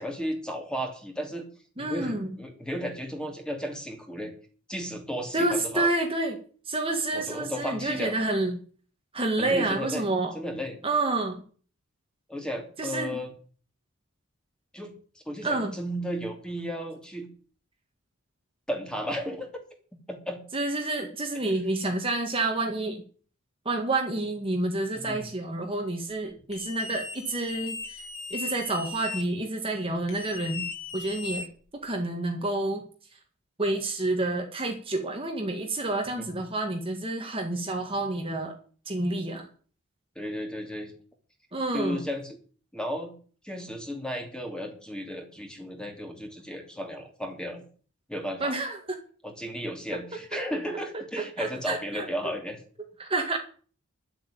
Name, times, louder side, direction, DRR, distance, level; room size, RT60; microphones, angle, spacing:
voice 1, 0.0-1.5 1.8-4.3 4.7-5.9 7.1-8.1 9.4-10.1 10.3-10.8 12.3-13.3 14.7-14.9 15.3-17.3 18.7-19.5 20.1-20.4 21.4-21.5 24.9-25.3 36.2-36.4 40.1-40.9 41.7-42.4 42.7-43.1 43.4-47.6 48.1-48.5 49.2-52.6, equal, 5° left, 3 dB, 2.9 m, -34 dB
voice 2, 1.8-2.4 5.3-6.4 6.7-8.6 9.1-10.3 10.8-11.4 12.8-13.2 15.4-15.7 20.5-23.0 23.7-28.0 28.3-30.7 30.9-31.5 31.8-32.8 33.6-38.5 38.9-39.5 41.5-42.0 48.4-49.0 51.4-52.1 53.0-53.4, right 2 dB, 25° right, 3 dB, 1.9 m, -29 dB
sound 1, 26.5-29.2 30.1-31.9, left 4 dB, 80° left, 4.0 m, -38 dB
11.5 x 8.2 x 8.8 m, 0.42 s
head